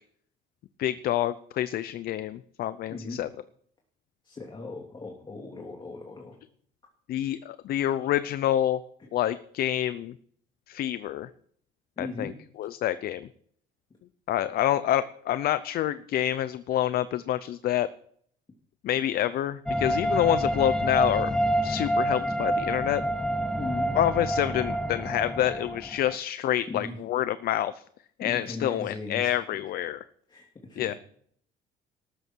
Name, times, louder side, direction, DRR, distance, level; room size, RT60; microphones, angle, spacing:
voice 1, 0.8-3.3 7.1-8.8 9.1-10.1 10.7-11.3 12.0-12.3 12.6-13.3 14.3-17.9 18.8-21.3 21.6-23.0 23.9-27.8 28.2-30.0 30.8-30.9, left 12 dB, 65° left, 14 dB, 0.7 m, -27 dB
voice 2, 2.9-3.2 4.2-6.4 12.0-12.3 23.6-23.9 26.7-27.0 28.2-29.4 30.3-31.0, left 3 dB, 25° left, 1 dB, 2.8 m, -38 dB
sound 1, 19.7-26.1, right 1 dB, 5° left, 0.8 m, -27 dB
14.0 x 12.5 x 4.6 m, 0.62 s
cardioid pair, 110°, 17 cm